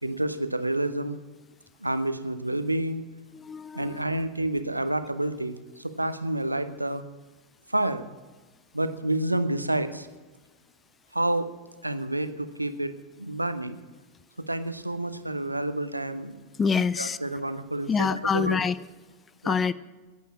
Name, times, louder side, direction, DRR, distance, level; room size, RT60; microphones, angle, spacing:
voice 1, 0.0-1.2 1.8-3.0 3.7-7.0 7.7-8.1 8.7-10.1 11.1-11.5 11.8-13.8 14.4-16.5 17.0-18.6 19.4-19.6, right 1 dB, 85° right, 11 dB, 0.9 m, -29 dB
voice 2, 3.3-4.0 16.6-17.2 17.9-18.8 19.4-19.7, left 5 dB, 20° left, 17 dB, 0.5 m, -26 dB
14.5 x 9.2 x 8.5 m, 1.3 s
figure-of-eight pair, 90°, 0 cm